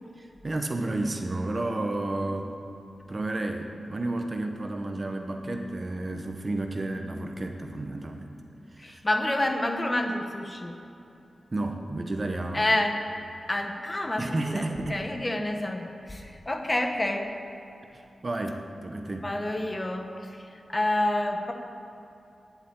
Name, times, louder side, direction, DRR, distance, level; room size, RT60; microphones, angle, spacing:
voice 1, 0.2-2.5 3.1-8.3 8.8-9.0 11.5-12.6 14.2-15.0 17.9-19.3, right 2 dB, 30° right, 4 dB, 0.8 m, -31 dB
voice 2, 8.8-10.8 12.5-13.1 13.5-14.6 14.9-17.3 19.2-21.5, left 1 dB, 20° left, 4 dB, 1.0 m, -28 dB
10.5 x 7.8 x 8.9 m, 2.8 s
wide cardioid pair, 145°, 0 cm